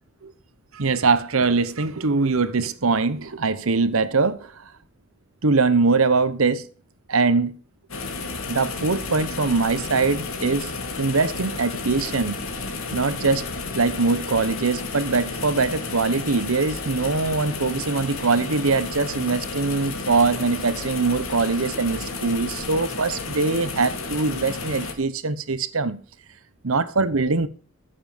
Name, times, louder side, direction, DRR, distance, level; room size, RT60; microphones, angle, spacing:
voice 1, 0.7-4.7 5.4-6.6 7.1-7.6 8.5-10.7 11.0-12.4 12.9-13.5 13.7-26.0 26.6-27.5, right 4 dB, 75° right, 0.9 m, -22 dB
sound 1, 7.9-24.9, left 3 dB, 75° left, 2.3 m, -32 dB
14.5 x 7.1 x 5.2 m
head